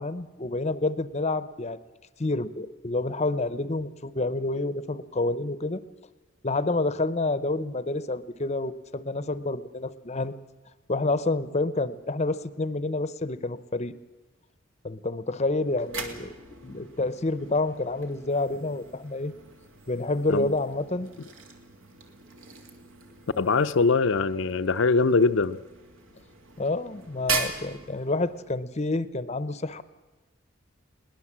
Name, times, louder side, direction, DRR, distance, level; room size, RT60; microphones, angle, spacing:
voice 1, 0.0-1.8 2.2-5.8 6.4-10.4 10.9-13.9 14.8-16.3 16.6-19.3 19.9-21.1 26.6-29.8, left 2 dB, 30° left, 15 dB, 0.7 m, -28 dB
sound 1, 15.5-28.6, right 5 dB, 75° right, 2.3 m, -39 dB
voice 2, 23.4-25.6, left 4 dB, 65° left, 10 dB, 0.6 m, -22 dB
21.0 x 19.0 x 7.4 m, 1.2 s
head